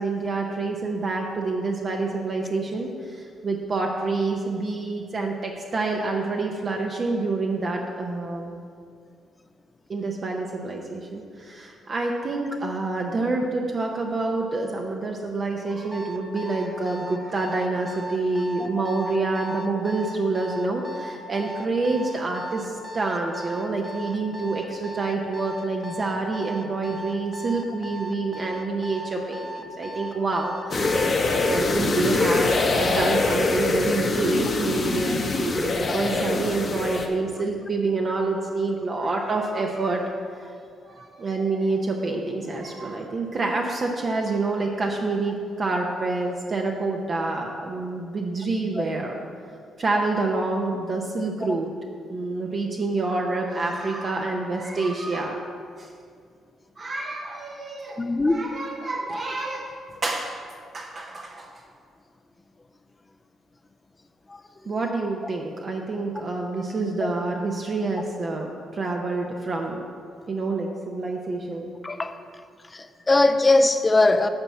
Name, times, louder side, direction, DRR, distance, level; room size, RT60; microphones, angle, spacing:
voice 1, 0.0-8.5 9.9-49.2 49.8-51.7 52.1-55.5 55.8-55.9 56.8-60.4 60.7-61.5 64.7-69.8 70.3-71.7, right 3 dB, 40° right, 0.7 m, -27 dB
Alarm, 15.9-31.7, right 1 dB, 10° right, 0.8 m, -37 dB
sound 1, 30.7-37.1, left 3 dB, 40° left, 1.0 m, -23 dB
voice 2, 58.0-58.4 71.8-72.1 72.7-74.3, left 2 dB, 20° left, 0.5 m, -20 dB
8.8 x 4.2 x 7.2 m
cardioid pair, 90°, 0 cm